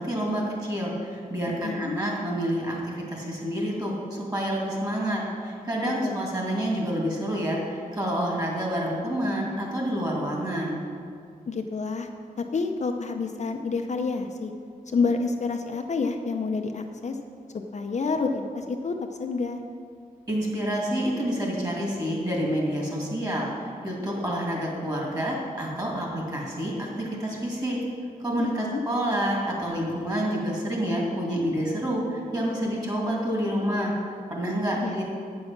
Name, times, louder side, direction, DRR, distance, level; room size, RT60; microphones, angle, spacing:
voice 1, 0.0-10.8 20.3-27.8 28.2-35.0, equal, 25° right, -3 dB, 2.3 m, -28 dB
voice 2, 1.6-2.0 5.8-6.2 11.5-12.1 12.4-14.5 14.9-17.2 17.7-19.6 28.4-28.8 34.8-35.0, left 4 dB, 50° left, 4 dB, 0.6 m, -28 dB
8.6 x 6.4 x 5.9 m, 2.3 s
wide cardioid pair, 110°, 15 cm